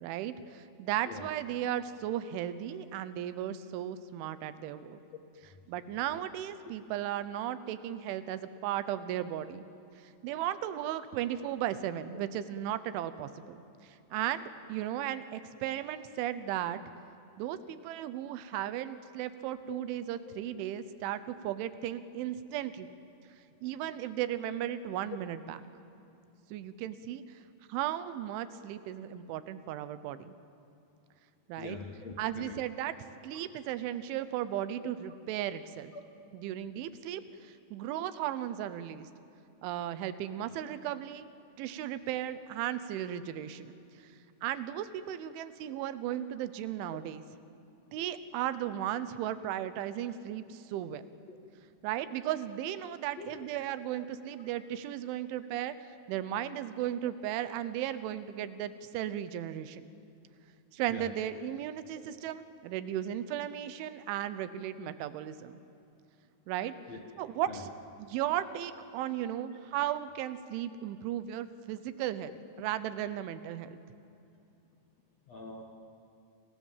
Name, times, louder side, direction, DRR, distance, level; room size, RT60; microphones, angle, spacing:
voice 1, 0.0-5.0 5.7-9.7 10.0-16.8 17.4-22.9 23.6-25.6 26.5-27.4 27.7-30.3 31.5-31.8 32.2-32.9 33.2-35.9 36.3-39.1 39.6-41.3 41.6-43.8 44.0-44.1 44.4-47.2 47.9-51.0 51.8-59.9 60.7-65.6 66.5-66.8 67.2-67.7 68.0-73.8, right 11 dB, 85° right, 13 dB, 3.4 m, -36 dB
voice 2, 31.6-32.6 35.9-36.0 51.3-51.4 53.2-53.7 60.9-61.1 62.0-62.2 66.9-67.0 67.5-67.6 75.3-75.6, left 4 dB, 60° left, 2 dB, 1.7 m, -44 dB
30.0 x 25.0 x 7.4 m, 2.7 s
omnidirectional pair, 5.4 m